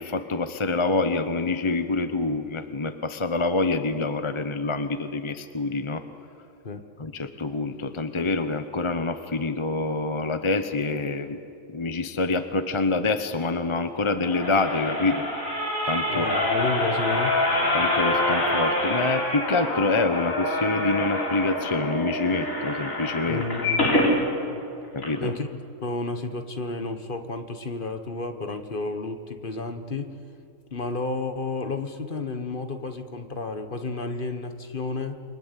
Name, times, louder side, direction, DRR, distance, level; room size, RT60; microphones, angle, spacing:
voice 1, 0.0-6.0 7.0-11.4 11.7-15.2 15.9-16.3 17.7-23.4 24.9-25.3, left 3 dB, 25° left, 9 dB, 0.8 m, -26 dB
sound 1, 14.0-24.1 24.6-24.7 25.0-25.1, left 1 dB, 75° left, 5.3 m, -26 dB
voice 2, 16.1-17.4 23.3-24.0 25.2-25.5 25.8-30.2 30.7-35.2, left 3 dB, 40° left, 8 dB, 1.4 m, -31 dB
28.5 x 23.0 x 8.3 m, 2.6 s
omnidirectional pair, 1.4 m